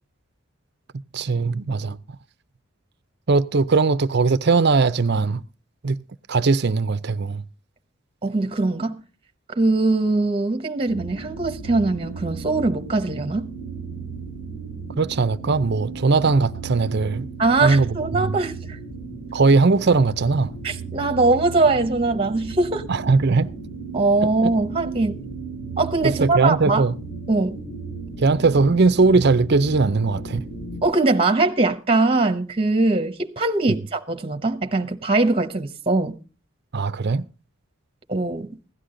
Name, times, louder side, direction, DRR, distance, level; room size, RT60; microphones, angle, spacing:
voice 1, 1.1-2.0 3.3-5.4 5.8-6.0 6.3-7.4 15.0-17.3 17.6-18.4 19.3-20.5 22.9-23.5 26.0-27.0 28.2-30.5 33.7-33.8 36.7-37.3, right 4 dB, 50° right, 0.6 m, -19 dB
voice 2, 8.2-9.0 9.6-13.5 17.4-18.8 20.6-22.8 23.9-25.2 25.8-26.8 27.3-27.6 30.8-36.2 38.1-38.5, right 3 dB, 25° right, 1.0 m, -21 dB
sound 1, 10.9-30.8, right 4 dB, 60° left, 4.2 m, -35 dB
16.5 x 11.5 x 3.8 m
head